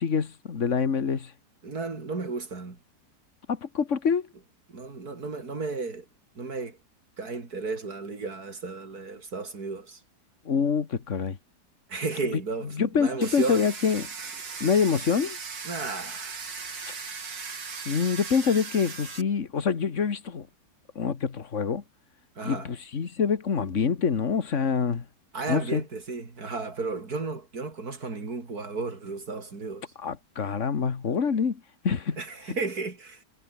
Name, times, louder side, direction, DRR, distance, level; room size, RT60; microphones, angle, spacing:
voice 1, 0.0-1.3 3.5-4.3 10.5-11.4 12.7-14.1 14.6-15.4 17.9-20.5 21.0-21.8 22.4-25.1 25.5-25.8 30.0-32.2, left 6 dB, 45° left, 1.9 m, -26 dB
voice 2, 1.6-2.8 4.7-6.1 6.4-6.8 7.2-10.0 11.9-13.7 15.6-16.5 22.4-22.7 25.3-29.9 32.2-33.2, right 3 dB, 55° right, 4.0 m, -34 dB
Domestic sounds home sounds, 13.2-19.2, right 5 dB, 85° right, 3.5 m, -38 dB
omnidirectional pair, 1.9 m